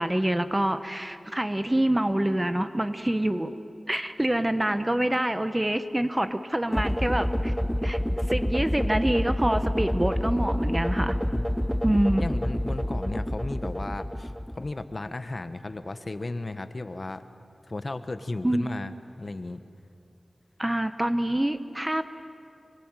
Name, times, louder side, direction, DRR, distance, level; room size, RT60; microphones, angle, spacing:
voice 1, 0.0-3.6 3.9-7.5 7.8-8.0 8.3-11.2 11.8-12.3 18.4-18.7 20.6-22.1, right 1 dB, 15° right, 10 dB, 1.1 m, -26 dB
sound 1, 6.7-14.9, equal, 5° left, 0.7 m, -28 dB
voice 2, 12.2-17.2 17.7-18.9 19.2-19.6, left 2 dB, 45° left, 10 dB, 1.2 m, -35 dB
26.5 x 22.0 x 9.1 m, 2.5 s
wide cardioid pair, 70°, 0 cm